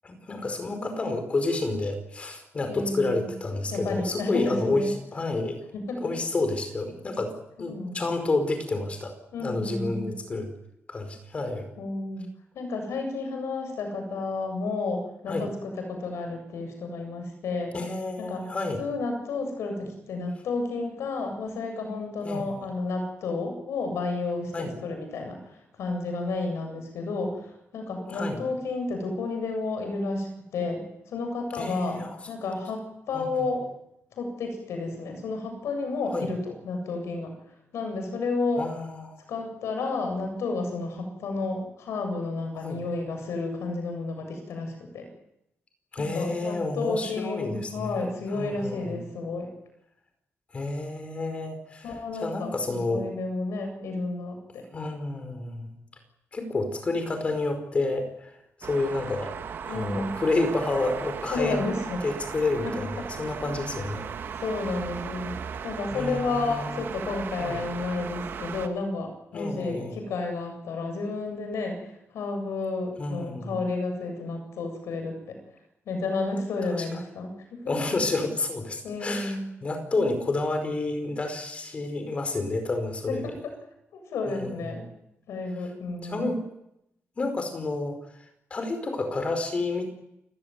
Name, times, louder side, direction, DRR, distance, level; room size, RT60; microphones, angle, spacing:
voice 1, 0.0-5.6 6.0-10.5 10.9-11.7 15.3-15.5 17.7-18.8 22.2-22.6 24.5-24.7 28.1-28.4 31.5-32.2 33.1-33.3 36.1-36.3 38.6-39.2 42.6-42.8 45.9-49.0 50.5-51.9 52.2-53.1 54.7-55.8 56.3-58.3 58.6-59.3 59.6-61.6 62.0-64.1 65.9-66.7 67.4-67.6 69.3-70.1 73.0-73.6 76.8-76.9 77.7-79.4 79.6-83.3 84.3-84.8 86.0-86.4 87.2-88.0 88.5-89.9, left 2 dB, 25° left, 7 dB, 4.8 m, -30 dB
voice 2, 2.7-3.3 3.7-5.0 5.8-6.0 7.6-8.0 9.3-10.1 11.8-12.3 12.5-17.7 18.2-18.4 18.8-33.7 34.1-37.3 37.7-38.6 39.3-45.1 46.0-49.5 51.8-52.5 52.9-54.6 59.7-60.2 61.3-62.0 62.6-62.7 64.3-65.3 65.6-75.4 75.9-77.7 78.8-79.4 83.1-83.5 83.9-84.9 85.3-86.3, left 3 dB, 85° left, 5 dB, 7.9 m, -31 dB
sound 1, 58.6-68.7, right 7 dB, 55° right, 1.9 m, -37 dB
29.0 x 16.0 x 9.5 m, 0.83 s
wide cardioid pair, 175°, 5 cm